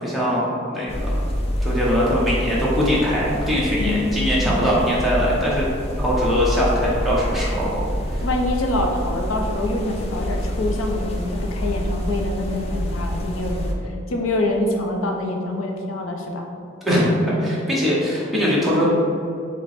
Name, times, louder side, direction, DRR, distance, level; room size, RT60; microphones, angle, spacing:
voice 1, 0.0-1.2 1.6-5.7 6.0-7.8 8.1-8.2 16.8-18.9, equal, ahead, -7 dB, 0.7 m, -21 dB
sound 1, 0.9-13.7, equal, 30° left, 0.4 m, -26 dB
voice 2, 3.8-4.5 8.2-16.5, left 2 dB, 90° left, 2 dB, 0.6 m, -25 dB
5.0 x 2.1 x 4.2 m, 2.5 s
head